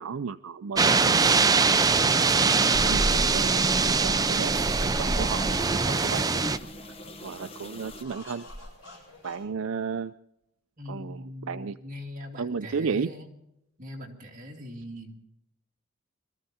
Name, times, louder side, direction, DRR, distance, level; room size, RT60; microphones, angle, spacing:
voice 1, 0.0-1.4 1.7-2.3 2.8-5.5 5.9-6.3 7.2-8.5 9.2-10.1 10.9-11.8 12.4-13.1, right 5 dB, 70° right, 11 dB, 0.5 m, -34 dB
sound 1, 0.8-6.6, right 4 dB, 15° right, 0.5 m, -23 dB
sound 2, 2.4-8.0, left 1 dB, 25° left, 1.1 m, -42 dB
sound 3, 2.7-9.4, equal, 65° left, 7.4 m, -35 dB
voice 2, 10.8-13.3 13.8-15.2, left 1 dB, 40° right, 0 dB, 2.6 m, -41 dB
21.5 x 14.0 x 4.2 m, 0.81 s
head